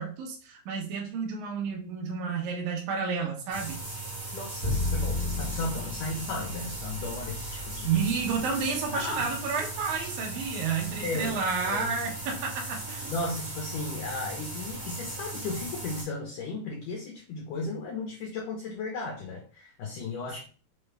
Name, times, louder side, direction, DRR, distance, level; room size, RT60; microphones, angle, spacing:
voice 1, 0.0-3.8 7.8-13.1, right 5 dB, 90° right, 0 dB, 1.7 m, -31 dB
sound 1, 3.5-16.0, right 2 dB, 40° right, 0.6 m, -38 dB
voice 2, 4.3-8.1 8.9-9.3 11.0-11.4 11.7-11.9 13.1-20.4, left 3 dB, 75° left, -1 dB, 1.9 m, -35 dB
Bowed string instrument, 4.6-10.7, left 2 dB, 55° left, 1.0 m, -35 dB
6.0 x 2.2 x 3.3 m, 0.38 s
omnidirectional pair, 4.6 m